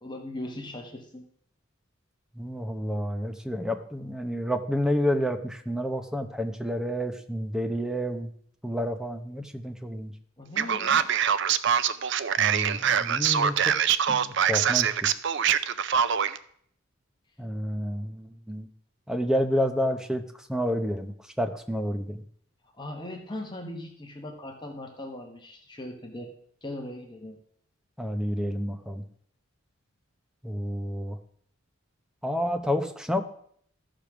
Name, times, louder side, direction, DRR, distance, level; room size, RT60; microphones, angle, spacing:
voice 1, 0.0-1.3 10.4-11.1 22.7-26.3 26.6-27.4, left 1 dB, 20° left, 2 dB, 1.1 m, -39 dB
voice 2, 2.4-8.3 8.6-10.1 12.4-13.7 14.1-15.1 17.4-18.7 19.1-22.2 28.0-29.0 30.4-31.2 32.2-33.2, equal, 5° right, 7 dB, 0.8 m, -29 dB
Male speech man speaking, 10.6-16.4, right 8 dB, 55° right, 0.5 m, -24 dB
14.0 x 5.1 x 6.0 m, 0.64 s
head